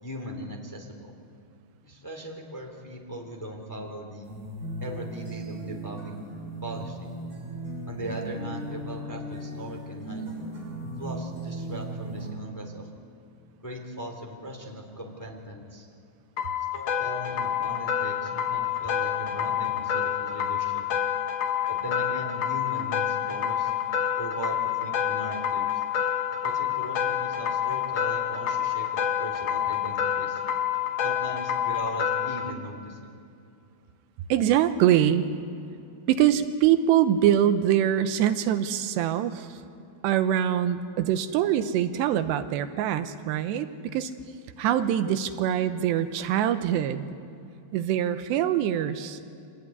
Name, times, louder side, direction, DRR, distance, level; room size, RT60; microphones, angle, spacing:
voice 1, 0.0-1.1 1.8-4.3 4.8-6.1 6.6-7.1 7.9-10.3 11.0-12.9 13.6-15.9 16.7-20.8 21.7-23.7 24.2-25.7 26.4-30.4 31.0-33.2, right 1 dB, 5° left, 2 dB, 2.1 m, -39 dB
sound 1, 4.3-12.3, right 1 dB, 55° right, 8.7 m, -37 dB
sound 2, 16.4-32.5, left 9 dB, 90° left, 1.5 m, -28 dB
voice 2, 34.3-35.3 36.1-39.6 40.0-44.1 44.6-47.1 47.7-49.2, right 10 dB, 90° right, 10 dB, 3.0 m, -24 dB
26.0 x 18.5 x 9.6 m, 2.7 s
omnidirectional pair, 4.9 m